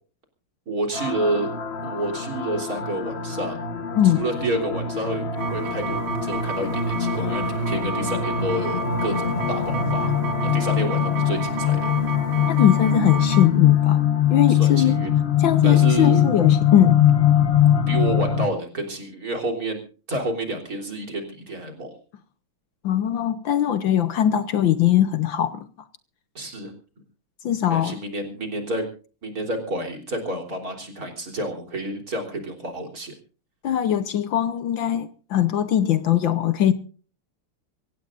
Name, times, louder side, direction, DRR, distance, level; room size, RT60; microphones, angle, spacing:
voice 1, 0.7-1.5 1.8-3.6 4.1-10.2 10.4-11.9 14.5-15.1 15.6-16.3 17.9-22.0 26.4-26.7 27.7-28.9 29.2-33.1, right 1 dB, 40° right, 4.0 m, -29 dB
sound 1, 0.9-18.5, left 9 dB, 35° left, 1.2 m, -22 dB
sound 2, 5.4-13.5, right 5 dB, 75° right, 2.8 m, -32 dB
voice 2, 12.5-14.0 14.3-15.0 15.4-17.0 22.8-25.7 27.4-28.0 33.6-36.7, left 10 dB, 65° left, 1.6 m, -21 dB
25.0 x 16.5 x 2.5 m
omnidirectional pair, 2.4 m